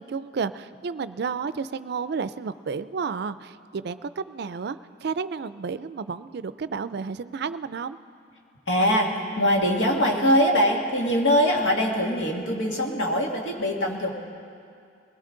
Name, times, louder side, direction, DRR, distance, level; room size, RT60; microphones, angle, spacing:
voice 1, 0.0-8.0, right 5 dB, 60° right, 14 dB, 0.4 m, -31 dB
voice 2, 8.7-14.1, equal, 85° left, 0 dB, 2.0 m, -22 dB
20.5 x 18.0 x 3.9 m, 2.3 s
head